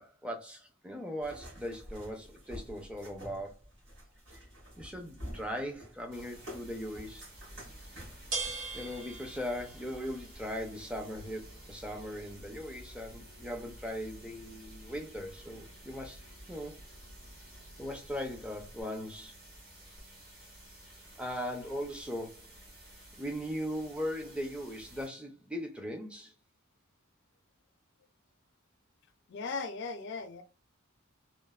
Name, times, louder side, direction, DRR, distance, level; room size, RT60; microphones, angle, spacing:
voice 1, 0.0-3.6 4.3-4.4 4.8-7.2 8.7-16.2 16.5-16.8 17.8-19.3 21.2-22.5 23.2-26.3, equal, 5° right, 0.5 m, -39 dB
sound 1, 1.2-8.5, equal, 60° right, 1.6 m, -48 dB
sound 2, 6.1-25.1, right 1 dB, 45° right, 1.3 m, -54 dB
sound 3, 7.3-18.8, right 3 dB, 80° right, 1.1 m, -46 dB
voice 2, 29.3-30.4, left 4 dB, 55° left, 0.4 m, -37 dB
3.1 x 2.0 x 2.3 m
head